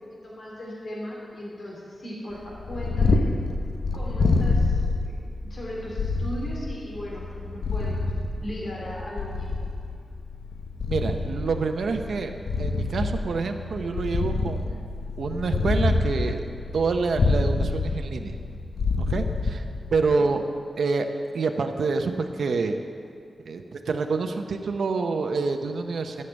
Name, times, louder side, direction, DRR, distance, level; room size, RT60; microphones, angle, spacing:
voice 1, 0.0-3.2 3.9-4.8 5.0-8.1 8.4-9.5, equal, 50° left, -4 dB, 3.3 m, -37 dB
Purr, 2.5-20.2, left 3 dB, 70° left, 0.8 m, -27 dB
voice 2, 10.9-14.9 15.2-16.4 16.7-18.4 19.0-19.6 19.9-20.4 20.8-21.1 21.3-22.8 23.5-26.2, right 4 dB, 85° right, 5 dB, 0.8 m, -27 dB
14.0 x 6.7 x 8.0 m, 2.4 s
wide cardioid pair, 145°, 0 cm